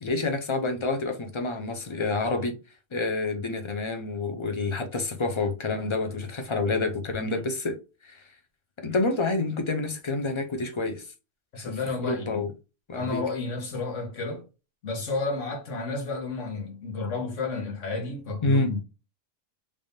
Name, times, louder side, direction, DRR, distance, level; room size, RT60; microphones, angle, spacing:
voice 1, 0.0-2.6 2.9-7.8 8.0-8.2 8.8-11.1 11.6-12.5 12.9-13.2 18.4-18.7, left 3 dB, 30° left, 0.6 m, -28 dB
voice 2, 11.5-12.5 12.9-14.4 14.8-18.8, left 3 dB, 90° left, 1.5 m, -31 dB
3.4 x 3.4 x 2.7 m
omnidirectional pair, 1.2 m